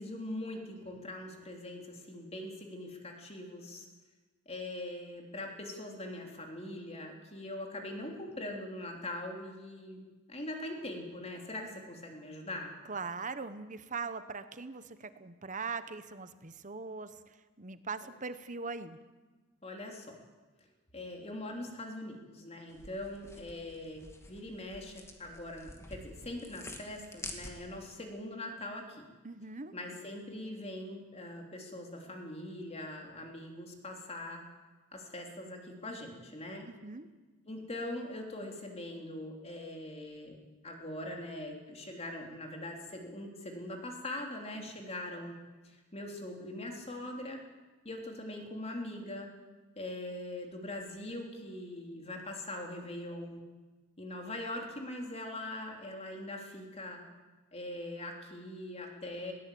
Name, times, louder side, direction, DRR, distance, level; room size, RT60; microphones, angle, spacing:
voice 1, 0.0-3.9 4.5-10.0 10.3-12.7 19.6-20.2 20.9-29.1 29.7-34.4 34.9-36.7 37.5-40.4 40.6-45.3 45.6-47.4 47.9-49.3 49.8-53.4 54.0-57.0 57.5-59.3, left 1 dB, 30° left, 2 dB, 3.5 m, -42 dB
voice 2, 12.9-17.1 17.6-19.0 29.2-29.7 36.7-37.1, right 4 dB, 35° right, 11 dB, 1.1 m, -40 dB
sound 1, 22.7-27.9, left 1 dB, 10° left, 2.2 m, -48 dB
21.0 x 18.0 x 8.6 m, 1.3 s
head